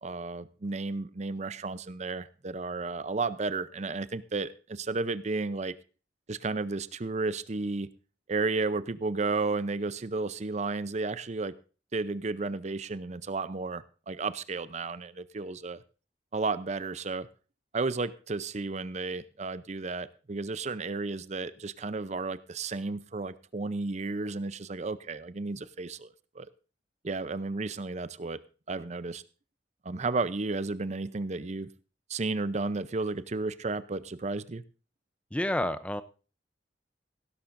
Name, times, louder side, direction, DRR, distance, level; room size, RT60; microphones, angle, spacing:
voice 1, 0.0-5.7 6.3-7.9 8.3-11.5 11.9-15.8 16.3-17.3 17.7-26.5 27.0-28.4 28.7-29.2 29.8-31.7 32.1-34.6, right 3 dB, 40° right, 15 dB, 0.6 m, -33 dB
voice 2, 35.3-36.0, left 1 dB, 5° left, 13 dB, 0.6 m, -29 dB
16.0 x 13.0 x 2.6 m, 0.36 s
head